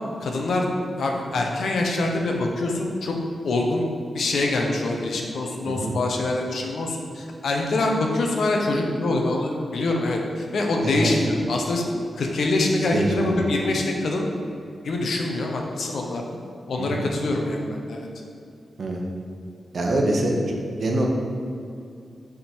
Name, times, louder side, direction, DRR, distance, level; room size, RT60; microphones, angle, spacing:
voice 1, 0.2-0.7 1.0-3.1 3.4-11.8 12.2-14.3 14.8-16.2 16.7-18.1, left 2 dB, 70° left, 1 dB, 0.8 m, -24 dB
voice 2, 12.9-13.3 16.8-17.0 18.8-19.0 19.7-21.1, right 1 dB, 50° right, 0 dB, 0.8 m, -24 dB
6.9 x 3.7 x 4.4 m, 2.5 s
wide cardioid pair, 170°, 0 cm